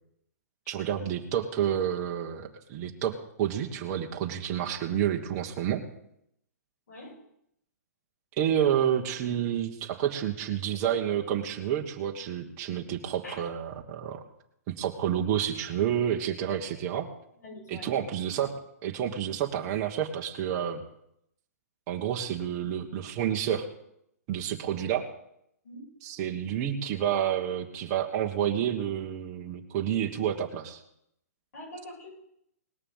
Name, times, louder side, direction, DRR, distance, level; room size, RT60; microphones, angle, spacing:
voice 1, 0.7-5.8 8.4-14.2 14.7-17.1 17.7-18.5 18.8-20.8 21.9-23.7 24.3-25.0 26.0-30.8, right 10 dB, 35° right, 1 dB, 1.3 m, -29 dB
voice 2, 17.4-18.1 25.6-25.8 31.5-32.2, left 1 dB, 75° left, -2 dB, 7.8 m, -44 dB
19.0 x 6.7 x 7.3 m, 0.75 s
hypercardioid pair, 150°, 9 cm